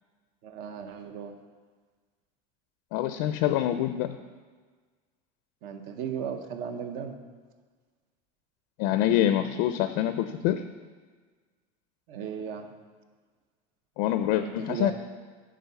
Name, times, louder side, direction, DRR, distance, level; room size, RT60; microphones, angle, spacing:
voice 1, 0.4-1.3 5.6-7.2 12.1-12.7 14.4-14.9, right 7 dB, 60° right, 7 dB, 0.8 m, -36 dB
voice 2, 2.9-4.2 8.8-10.6 14.0-14.9, left 12 dB, 70° left, 10 dB, 0.4 m, -25 dB
8.9 x 3.7 x 6.8 m, 1.5 s
cardioid pair, 150°, 17 cm